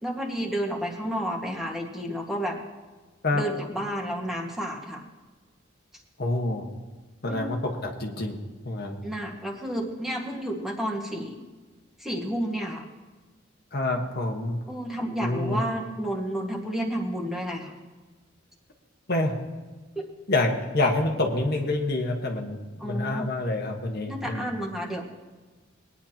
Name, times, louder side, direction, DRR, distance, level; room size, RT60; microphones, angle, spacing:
voice 1, 0.0-2.6 3.3-5.0 7.3-7.5 9.0-11.4 12.0-12.9 14.7-17.7 22.8-23.3 24.1-25.0, equal, ahead, -1 dB, 1.7 m, -31 dB
voice 2, 6.2-6.7 7.2-8.4 8.6-9.0 13.7-14.6 15.2-15.6 19.1-19.3 20.3-24.5, left 2 dB, 55° left, 2 dB, 1.4 m, -27 dB
21.0 x 9.9 x 2.9 m, 1.3 s
head